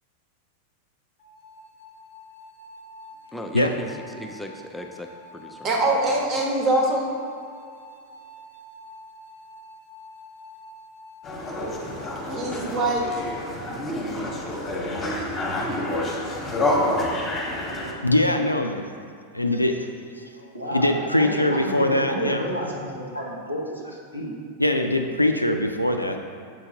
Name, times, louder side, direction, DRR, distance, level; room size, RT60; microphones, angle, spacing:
sound 1, 1.2-12.4, left 2 dB, 50° left, 0.6 m, -46 dB
voice 1, 3.3-6.3, equal, 5° left, 2 dB, 0.4 m, -37 dB
voice 2, 5.6-7.1 12.3-13.2, right 2 dB, 30° right, -1 dB, 1.0 m, -23 dB
sound 2, 11.2-17.9, left 1 dB, 20° left, 1.0 m, -28 dB
voice 3, 18.0-18.8 19.3-19.9 20.7-22.4 24.6-26.2, left 1 dB, 85° left, 5 dB, 0.4 m, -22 dB
voice 4, 20.4-24.3, equal, 90° right, -4 dB, 0.9 m, -31 dB
7.5 x 4.5 x 2.8 m, 2.3 s
figure-of-eight pair, 90°, 0 cm